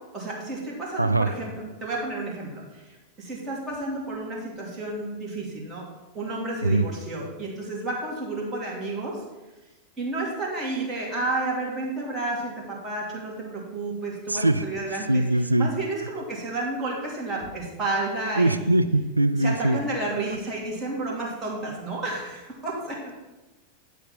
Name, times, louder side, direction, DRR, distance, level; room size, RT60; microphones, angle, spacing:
voice 1, 0.1-5.8 6.1-9.2 10.0-15.2 15.5-18.8 19.4-23.1, right 2 dB, 20° right, -3 dB, 2.9 m, -31 dB
voice 2, 1.0-1.3 6.6-6.9 14.3-14.6 15.1-15.7 18.4-19.8, right 2 dB, 85° right, 8 dB, 0.4 m, -21 dB
10.5 x 4.3 x 5.7 m, 1.1 s
figure-of-eight pair, 90°, 0 cm